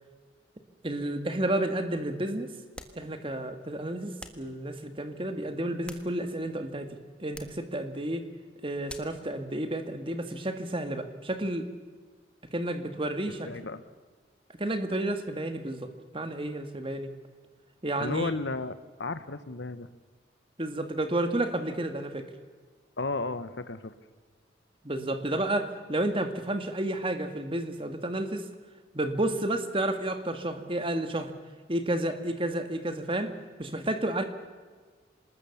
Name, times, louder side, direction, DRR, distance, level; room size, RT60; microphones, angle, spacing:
voice 1, 0.8-2.5 3.0-8.2 8.6-11.7 12.5-13.5 14.6-17.1 17.8-18.3 20.6-22.3 24.8-28.5 28.9-31.3 31.7-33.3 33.6-34.2, right 1 dB, 30° right, 8 dB, 1.8 m, -31 dB
sound 1, 2.7-3.1 4.2-4.5 5.6-6.5 7.3-7.6 8.9-9.2, left 1 dB, 5° left, 1.4 m, -46 dB
voice 2, 13.4-13.8 18.0-19.9 23.0-23.9, left 3 dB, 70° left, 13 dB, 1.1 m, -33 dB
26.0 x 20.0 x 7.2 m, 1.5 s
head